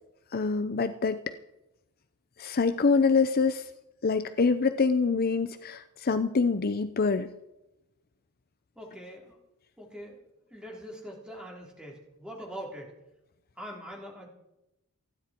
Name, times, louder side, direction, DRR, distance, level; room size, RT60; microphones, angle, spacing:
voice 1, 0.3-1.3 2.4-3.7 4.0-7.3, left 4 dB, 45° left, 11 dB, 0.6 m, -25 dB
voice 2, 8.8-9.4 9.8-10.2 10.5-12.9 13.6-14.3, equal, 5° right, -2 dB, 3.7 m, -43 dB
28.5 x 10.0 x 4.5 m, 0.93 s
head